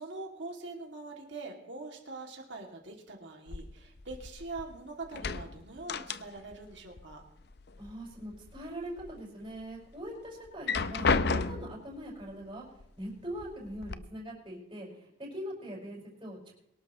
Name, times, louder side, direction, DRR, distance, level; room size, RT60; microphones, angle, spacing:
voice 1, 0.0-7.2, right 3 dB, 60° right, 1 dB, 2.5 m, -43 dB
sound 1, 3.5-4.7 5.0-6.6 6.9-7.9 8.3-9.1 9.6-9.7 10.5-11.9 12.8-12.9 13.3-13.9, left 4 dB, 50° left, 0.6 m, -32 dB
voice 2, 7.8-12.6 13.0-16.5, equal, 25° right, -3 dB, 5.6 m, -42 dB
23.0 x 12.5 x 3.1 m, 0.82 s
head